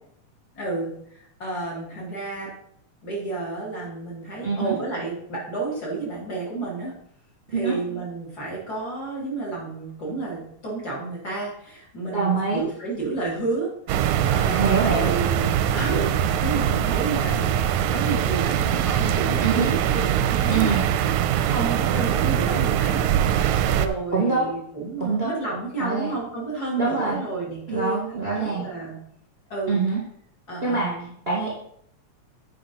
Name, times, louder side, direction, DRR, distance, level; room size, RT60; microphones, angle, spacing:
voice 1, 0.6-2.5 3.0-6.9 7.5-13.7 14.3-17.5 17.8-20.8 21.4-23.0 23.8-29.0 29.5-29.8 30.5-31.1, right 3 dB, 30° left, -5 dB, 3.6 m, -31 dB
voice 2, 4.4-4.8 7.5-7.8 12.1-12.6 14.5-15.1 19.4-19.7 20.5-20.8 24.1-24.5 25.0-25.4 25.8-26.1 26.8-27.2 27.7-28.6 29.7-30.0 30.6-30.9 31.3-31.5, right 4 dB, 25° right, -3 dB, 1.7 m, -24 dB
sound 1, 13.9-23.9, right 10 dB, 85° right, 2.0 m, -22 dB
8.7 x 5.7 x 5.4 m, 0.68 s
omnidirectional pair, 3.5 m